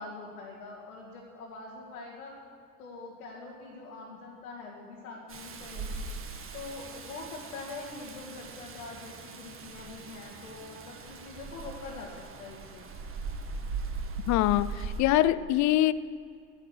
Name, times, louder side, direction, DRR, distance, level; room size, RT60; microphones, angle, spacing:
voice 1, 0.0-2.4 2.8-6.1 6.5-12.9, left 3 dB, 75° left, -3 dB, 2.1 m, -44 dB
Rain, 5.3-15.0, right 3 dB, 30° right, 1.7 m, -40 dB
voice 2, 14.3-15.9, left 14 dB, 40° left, 18 dB, 0.6 m, -24 dB
12.5 x 10.5 x 6.6 m, 2.4 s
figure-of-eight pair, 65°, 43 cm